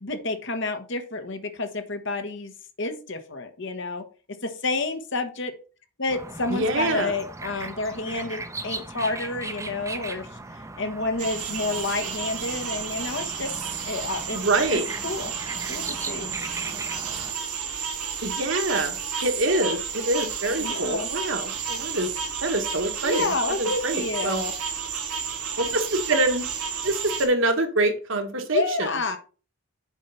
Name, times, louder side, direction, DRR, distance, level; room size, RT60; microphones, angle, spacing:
voice 1, 0.0-2.5 2.8-4.0 4.4-5.5 6.0-10.3 10.8-13.5 13.9-14.4 14.7-15.3 15.7-16.3 20.6-21.1 23.0-24.5 28.5-29.2, left 3 dB, 55° left, 8 dB, 1.2 m, -29 dB
sound 1, 6.1-17.3, right 3 dB, 15° right, 0.7 m, -38 dB
voice 2, 6.5-7.1 14.3-14.9 18.2-22.1 22.4-23.3 23.6-24.4 25.6-26.5 26.8-28.9, right 2 dB, 60° right, 6 dB, 1.4 m, -25 dB
sound 2, 11.2-27.3, right 6 dB, 85° right, 1.8 m, -32 dB
7.4 x 4.5 x 5.6 m, 0.36 s
head